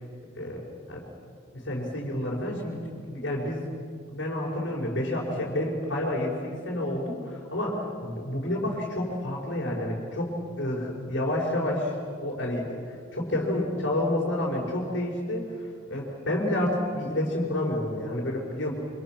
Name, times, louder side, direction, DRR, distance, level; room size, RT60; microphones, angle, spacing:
voice 1, 1.6-3.6 4.1-11.9 12.2-15.4 15.9-18.7, left 1 dB, 75° left, -5 dB, 5.3 m, -29 dB
27.5 x 27.0 x 6.2 m, 2.2 s
head